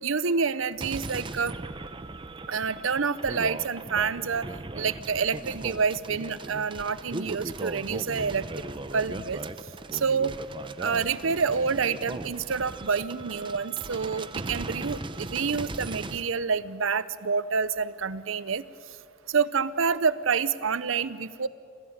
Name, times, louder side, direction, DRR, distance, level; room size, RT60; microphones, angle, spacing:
voice 1, 0.0-1.5 2.5-4.5 4.8-8.4 8.9-9.4 9.9-10.3 10.8-18.6 19.3-21.5, right 5 dB, 75° right, 16 dB, 0.7 m, -28 dB
sound 1, 0.8-16.2, right 2 dB, 25° right, 0.6 m, -38 dB
27.0 x 15.5 x 8.8 m, 2.5 s
head